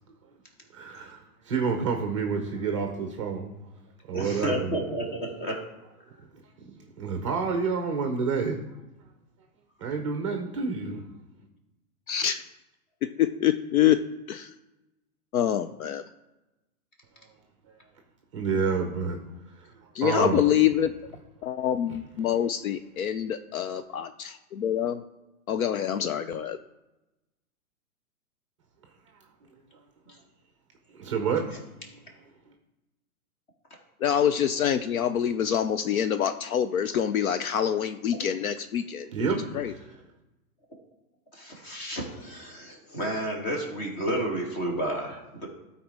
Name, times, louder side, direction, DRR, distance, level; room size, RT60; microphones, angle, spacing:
voice 1, 0.7-3.5 4.1-4.8 6.6-8.6 9.8-11.0 18.3-19.2 19.6-20.4 30.9-31.7 39.1-39.9, right 5 dB, 20° right, 4 dB, 0.6 m, -29 dB
voice 2, 4.1-5.6 41.3-45.5, right 1 dB, 30° left, -1 dB, 2.4 m, -31 dB
voice 3, 12.1-12.4 13.2-14.0 14.3-14.5 15.3-16.0 19.9-20.9 21.4-25.0 25.5-26.6 34.0-39.1 39.5-39.7, left 10 dB, 65° left, 11 dB, 0.6 m, -26 dB
12.5 x 4.2 x 4.7 m, 1.0 s
hypercardioid pair, 165°, 45 cm